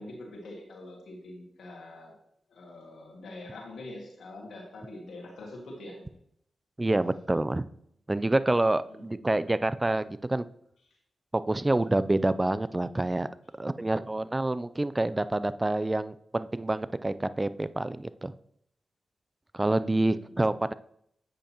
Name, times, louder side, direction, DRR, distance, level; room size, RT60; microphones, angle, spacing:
voice 1, 0.0-2.1 2.5-6.1 8.9-9.4 19.6-20.6, left 2 dB, 80° left, -1 dB, 1.8 m, -45 dB
voice 2, 6.8-7.6 8.1-10.4 11.3-13.3 13.6-18.3 19.5-20.7, right 2 dB, 25° right, 15 dB, 0.4 m, -27 dB
8.7 x 5.3 x 2.9 m, 0.70 s
supercardioid pair, 40°, 0 cm